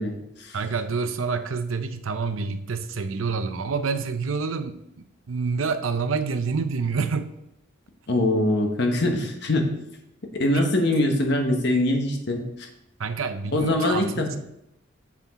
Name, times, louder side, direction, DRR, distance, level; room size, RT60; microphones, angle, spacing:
voice 1, 0.0-0.6 8.1-9.8 10.3-12.7 13.5-14.4, left 1 dB, 60° left, 3 dB, 1.2 m, -23 dB
voice 2, 0.5-7.3 10.5-10.6 13.0-14.4, right 5 dB, 85° right, 10 dB, 0.6 m, -28 dB
7.3 x 5.9 x 4.2 m, 0.81 s
head